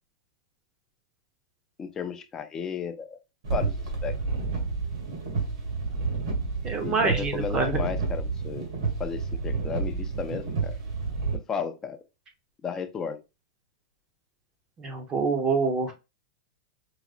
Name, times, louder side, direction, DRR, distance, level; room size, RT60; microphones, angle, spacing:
voice 1, 1.8-3.2 3.5-3.8 4.0-4.2 6.8-8.7 9.0-10.8 11.3-12.0 12.6-13.2, left 6 dB, 15° left, 0.4 m, -34 dB
sound 1, 3.4-11.4, right 4 dB, 75° right, 1.8 m, -30 dB
voice 2, 6.6-7.8 14.8-15.9, right 4 dB, 20° right, 0.7 m, -26 dB
4.8 x 2.0 x 2.3 m
supercardioid pair, 165°, 3 cm